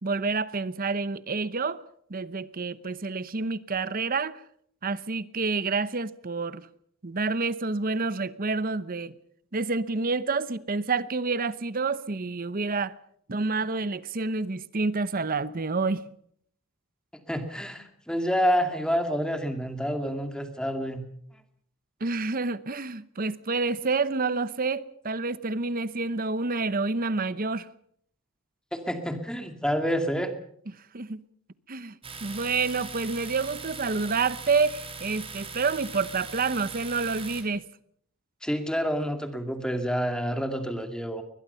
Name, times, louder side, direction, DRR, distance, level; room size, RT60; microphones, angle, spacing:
voice 1, 0.0-1.8 2.1-4.4 4.8-6.7 7.0-9.2 9.5-13.0 13.3-16.1 22.0-27.7 30.9-31.2 31.7-31.9 32.2-37.6, right 4 dB, 45° right, 0.8 m, -28 dB
voice 2, 17.3-21.0 28.7-30.3 38.4-41.2, equal, 5° left, 2.3 m, -28 dB
Domestic sounds home sounds, 32.0-37.4, right 4 dB, 25° right, 3.1 m, -40 dB
22.0 x 21.0 x 5.7 m
head